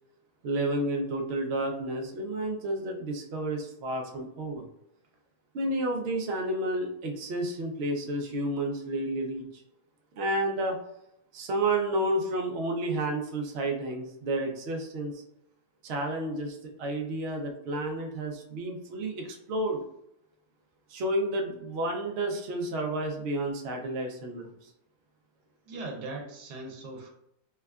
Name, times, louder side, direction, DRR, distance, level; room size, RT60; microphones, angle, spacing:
voice 1, 0.4-4.6 5.5-9.5 10.2-10.8 11.3-15.2 15.8-19.8 20.9-24.5, right 1 dB, 60° right, 2 dB, 0.7 m, -31 dB
voice 2, 25.7-27.1, right 2 dB, 80° right, 2 dB, 1.3 m, -39 dB
4.4 x 2.2 x 2.3 m, 0.80 s
omnidirectional pair, 1.7 m